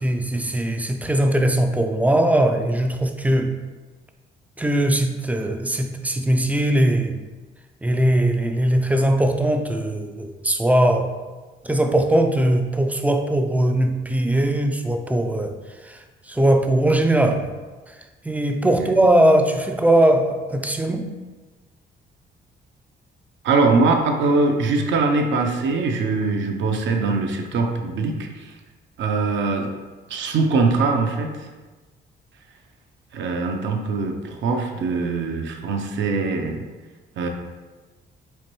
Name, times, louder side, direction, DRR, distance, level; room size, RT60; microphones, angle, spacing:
voice 1, 0.0-3.6 4.6-7.2 7.8-11.1 11.6-15.5 15.8-17.5 17.9-18.0 18.2-21.1, right 1 dB, 10° right, 5 dB, 0.3 m, -20 dB
voice 2, 23.4-28.5 29.0-29.7 30.1-31.5 33.1-36.7 37.2-37.3, right 3 dB, 70° right, 3 dB, 0.6 m, -22 dB
4.4 x 2.6 x 3.1 m, 1.3 s
cardioid pair, 90°, 20 cm